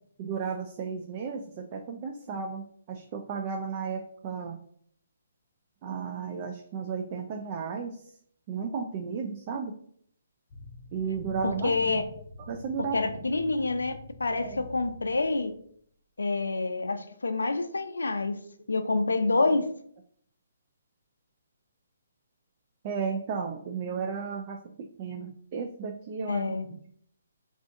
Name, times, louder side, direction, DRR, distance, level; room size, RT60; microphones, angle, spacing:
voice 1, 0.2-4.6 5.8-8.1 8.5-9.8 10.9-12.0 12.5-13.2 14.3-14.6 19.4-19.5 22.8-26.9, right 6 dB, 35° right, 3 dB, 0.3 m, -34 dB
sound 1, 10.5-15.7, left 3 dB, 35° left, 0.7 m, -47 dB
voice 2, 11.4-12.0 12.9-15.5 16.2-18.4 18.7-19.7 26.3-26.7, left 3 dB, 90° left, 9 dB, 0.4 m, -27 dB
2.5 x 2.4 x 3.6 m, 0.63 s
hypercardioid pair, 145°, 0 cm